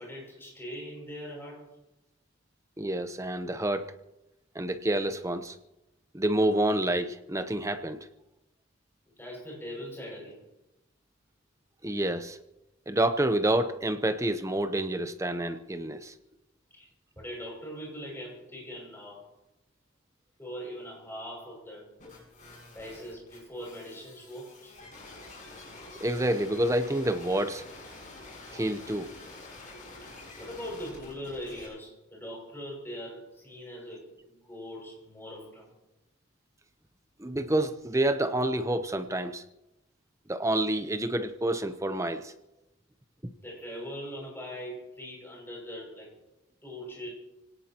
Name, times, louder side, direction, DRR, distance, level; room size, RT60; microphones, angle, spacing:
voice 1, 0.0-1.7 9.2-10.4 16.8-16.9 17.2-19.3 20.4-21.9 22.7-24.7 30.4-35.7 43.4-46.1 46.6-47.1, equal, 10° left, -2 dB, 6.4 m, -41 dB
voice 2, 2.8-3.9 4.5-5.5 6.1-8.0 11.8-12.4 12.9-16.1 26.0-27.6 28.5-29.1 37.2-39.4 40.3-42.3 43.2-43.3, right 1 dB, 15° right, 9 dB, 0.8 m, -28 dB
sound 1, 22.0-31.7, left 2 dB, 40° left, 7.4 m, -48 dB
24.5 x 18.0 x 3.0 m, 0.93 s
head